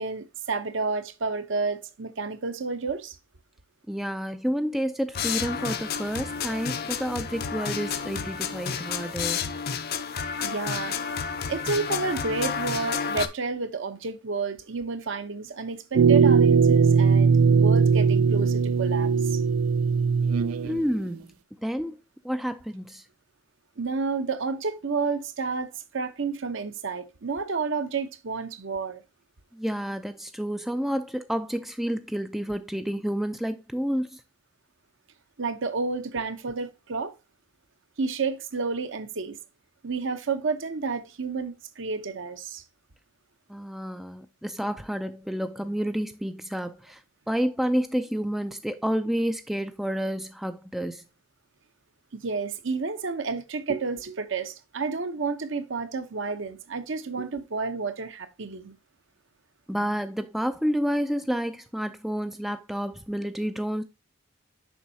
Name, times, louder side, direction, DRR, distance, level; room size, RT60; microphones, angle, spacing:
voice 1, 0.0-3.2 10.4-11.0 11.5-19.4 23.8-29.0 35.4-37.1 38.0-39.4 39.8-42.6 52.1-58.7, right 4 dB, 60° right, 0.8 m, -30 dB
voice 2, 3.9-9.5 20.6-21.3 21.6-22.0 22.2-23.0 29.5-34.2 43.5-47.0 47.3-51.0 59.7-63.8, equal, ahead, 0.3 m, -29 dB
sound 1, 5.1-13.3, left 6 dB, 45° left, 0.6 m, -31 dB
sound 2, 16.0-20.9, right 5 dB, 80° right, 0.4 m, -20 dB
7.1 x 5.5 x 2.7 m
head